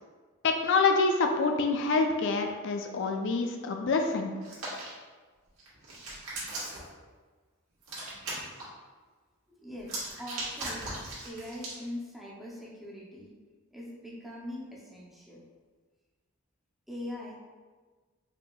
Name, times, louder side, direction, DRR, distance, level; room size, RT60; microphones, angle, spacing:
voice 1, 0.4-4.3, left 4 dB, 55° left, 4 dB, 0.4 m, -26 dB
Hands, 4.4-4.9 5.6-6.9 7.8-8.6 9.8-11.8, right 2 dB, 80° right, 1.3 m, -38 dB
voice 2, 9.6-10.8 11.2-13.3 13.7-15.4 16.9-17.4, left 1 dB, ahead, -6 dB, 0.6 m, -42 dB
4.8 x 2.7 x 2.3 m, 1.4 s
head